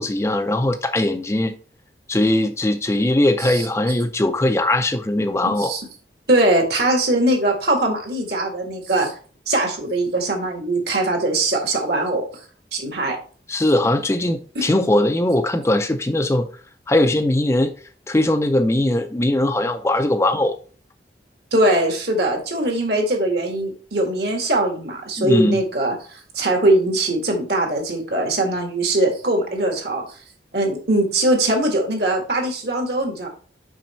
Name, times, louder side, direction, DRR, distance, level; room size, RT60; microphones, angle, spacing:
voice 1, 0.0-1.5 2.1-5.8 13.5-16.5 16.9-17.7 18.1-20.6 25.2-25.6, left 1 dB, 15° left, 0.4 m, -20 dB
voice 2, 5.4-5.8 6.3-9.1 9.5-12.4 12.7-13.2 14.6-14.7 21.5-30.0 30.5-33.3, right 1 dB, 65° right, 1.9 m, -21 dB
6.0 x 5.2 x 4.3 m
head